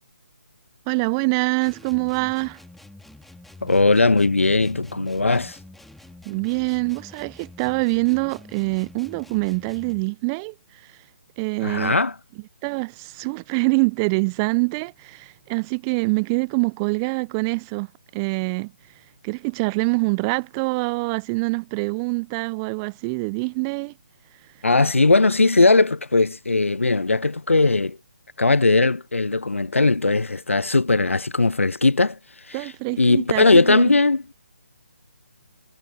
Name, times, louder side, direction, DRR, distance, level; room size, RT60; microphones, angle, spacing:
voice 1, 0.9-2.6 6.3-10.5 11.4-11.9 12.6-17.9 18.1-18.7 19.2-23.9 32.5-33.9, right 30 dB, 20° right, 0.5 m, -25 dB
sound 1, 1.6-10.1, left 2 dB, ahead, 3.6 m, -47 dB
voice 2, 3.6-5.6 11.6-12.1 24.6-28.0 28.4-32.2 32.5-32.7 33.0-34.2, left 3 dB, 80° left, 0.8 m, -19 dB
figure-of-eight pair, 145°, 7 cm